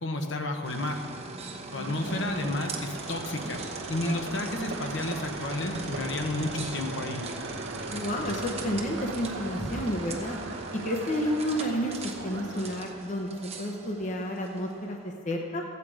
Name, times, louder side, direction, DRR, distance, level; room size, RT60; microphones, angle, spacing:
voice 1, 0.0-1.0 1.7-3.6 3.9-7.2, left 2 dB, 60° left, 4 dB, 1.1 m, -31 dB
sound 1, 0.6-15.0, right 3 dB, 30° right, 1.0 m, -41 dB
voice 2, 1.7-2.1 7.9-10.4 10.7-12.0 12.2-15.6, equal, 35° left, 2 dB, 0.9 m, -31 dB
sound 2, 1.8-12.9, right 2 dB, 65° right, 1.0 m, -39 dB
14.5 x 8.4 x 4.9 m, 2.3 s
head